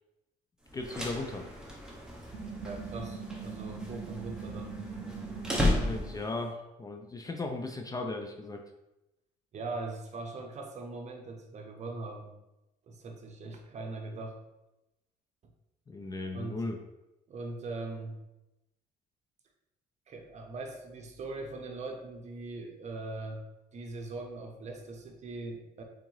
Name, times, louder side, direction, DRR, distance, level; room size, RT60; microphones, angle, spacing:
voice 1, 0.7-1.5 5.6-8.6 15.9-16.8, left 2 dB, 20° left, 4 dB, 0.4 m, -37 dB
sound 1, 0.7-6.4, left 1 dB, 5° right, 0.9 m, -34 dB
sound 2, 2.3-6.2, right 6 dB, 90° right, 0.5 m, -42 dB
voice 2, 2.6-5.0 9.5-12.3 12.9-14.4 16.3-16.6 17.3-18.2 20.1-23.4 23.7-25.8, right 3 dB, 40° right, 2 dB, 0.8 m, -41 dB
3.6 x 3.5 x 3.2 m, 0.94 s
cardioid pair, 110°, 17 cm